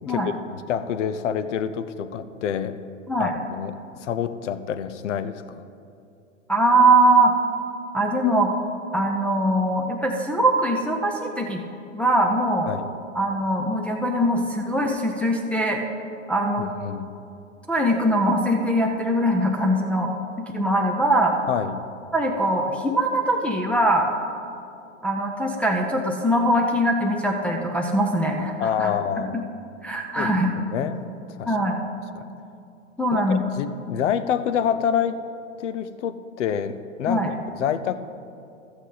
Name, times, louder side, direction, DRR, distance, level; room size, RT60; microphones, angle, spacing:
voice 1, 0.0-2.8 3.2-3.7 4.0-5.6 12.7-12.9 16.6-17.1 21.5-21.8 28.6-29.4 30.2-30.3 30.7-31.0 31.4-31.5 32.2-32.3 33.1-35.2 35.6-38.0, left 8 dB, 65° left, 12 dB, 0.7 m, -27 dB
voice 2, 6.5-7.3 7.9-8.5 8.9-11.6 11.9-12.7 13.1-15.8 16.3-16.7 17.7-20.1 20.4-21.3 22.1-24.1 25.0-28.9 29.2-29.3 29.8-30.6 31.5-31.8 33.0-33.4 37.1-37.3, right 1 dB, 5° left, -1 dB, 0.5 m, -22 dB
13.0 x 8.1 x 4.0 m, 2.5 s
hypercardioid pair, 110°, 39 cm